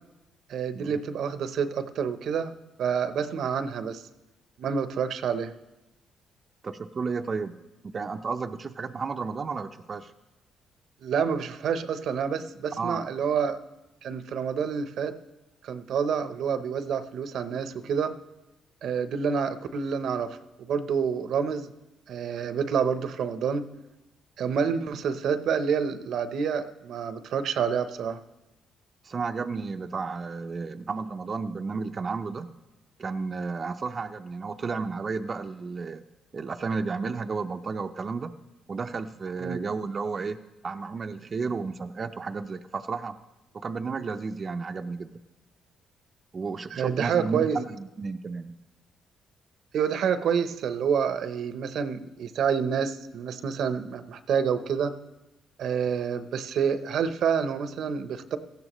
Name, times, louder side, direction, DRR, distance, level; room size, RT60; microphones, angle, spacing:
voice 1, 0.5-4.0 4.6-5.5 11.0-13.6 14.0-15.1 15.6-18.1 18.8-21.7 22.1-23.7 24.4-28.2 39.4-39.6 46.7-47.6 49.7-54.9 55.6-58.4, right 7 dB, 70° right, 11 dB, 0.8 m, -28 dB
voice 2, 6.6-7.5 7.8-10.1 12.8-13.0 29.0-32.5 33.0-36.0 36.3-38.3 38.7-40.4 40.6-43.2 43.5-45.1 46.3-48.6, right 4 dB, 40° right, 7 dB, 0.5 m, -32 dB
17.5 x 14.5 x 3.1 m, 1.0 s
cardioid pair, 90°, 0 cm